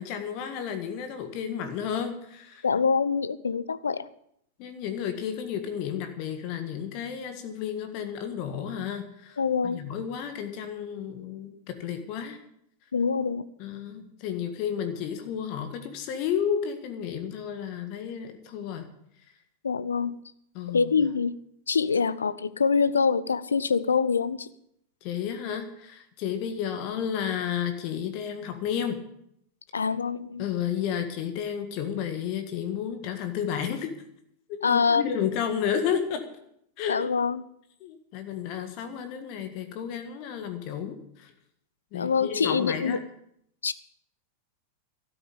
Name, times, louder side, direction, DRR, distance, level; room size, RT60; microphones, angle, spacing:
voice 1, 0.0-2.7 4.6-12.4 13.6-18.9 20.5-21.1 25.0-29.0 30.4-33.9 34.5-36.2 36.8-37.1 37.8-41.3 41.9-43.0, left 8 dB, 45° left, 7 dB, 1.7 m, -32 dB
voice 2, 2.6-4.1 9.4-9.8 12.9-13.4 19.6-20.2 20.7-21.4 21.7-24.5 29.7-30.4 34.6-35.0 36.9-37.4 41.9-43.0 43.6-43.7, left 5 dB, 75° left, 17 dB, 0.6 m, -25 dB
13.0 x 8.9 x 8.7 m, 0.73 s
figure-of-eight pair, 90°, 0 cm